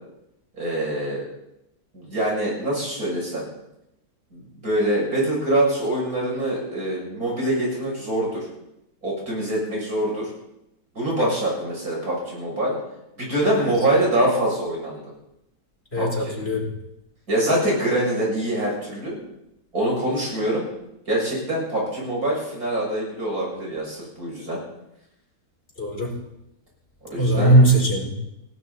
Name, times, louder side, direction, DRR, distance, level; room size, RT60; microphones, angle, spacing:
voice 1, 0.5-1.3 1.9-3.4 4.3-8.5 9.0-10.3 10.9-12.7 13.2-15.0 16.0-16.4 17.3-19.2 19.7-20.7 21.1-24.6 27.1-27.5, right 1 dB, 55° right, -3 dB, 8.1 m, -24 dB
voice 2, 15.9-16.7 25.8-26.1 27.2-28.1, right 1 dB, 35° left, -1 dB, 4.6 m, -19 dB
18.5 x 17.0 x 4.3 m, 0.84 s
omnidirectional pair, 1.8 m